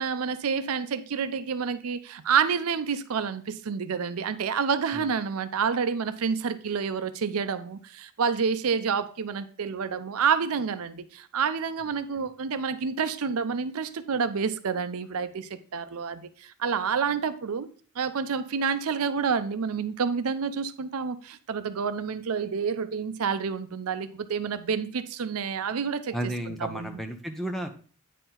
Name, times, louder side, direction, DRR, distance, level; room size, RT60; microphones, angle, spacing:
voice 1, 0.0-17.7 18.0-26.2 26.6-27.0, right 6 dB, 80° right, 0.5 m, -28 dB
voice 2, 26.1-27.8, right 1 dB, ahead, 0.6 m, -33 dB
9.0 x 4.4 x 3.8 m
head